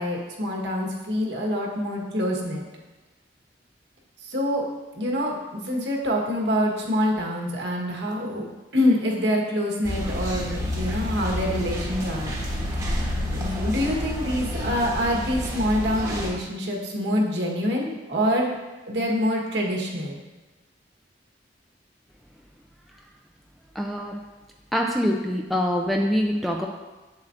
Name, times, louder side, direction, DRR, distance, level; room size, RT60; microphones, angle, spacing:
voice 1, 0.0-2.6 4.2-4.7 4.9-5.4 5.6-8.5 8.7-12.3 13.3-18.5 18.9-20.2, equal, 80° right, -1 dB, 1.3 m, -25 dB
sound 1, 9.8-16.3, left 1 dB, 20° right, 1.1 m, -29 dB
voice 2, 23.8-24.2 24.7-26.7, equal, ahead, 1 dB, 0.4 m, -24 dB
7.5 x 7.4 x 2.5 m, 1.2 s
head